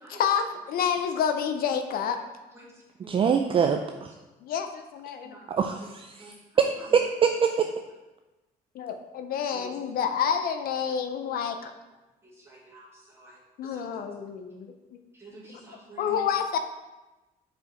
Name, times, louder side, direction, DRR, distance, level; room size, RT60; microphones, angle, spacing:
voice 1, 0.1-2.2 4.4-5.3 8.7-11.7 13.6-14.7 16.0-16.6, left 7 dB, 60° left, 7 dB, 0.5 m, -28 dB
voice 2, 3.1-4.1 5.5-7.7, right 6 dB, 30° right, 5 dB, 0.4 m, -24 dB
voice 3, 12.5-12.9 13.1-13.4 13.6-13.9 15.1-16.1, right 2 dB, 15° right, -5 dB, 2.1 m, -48 dB
5.0 x 4.6 x 4.4 m, 1.1 s
cardioid pair, 110°, 17 cm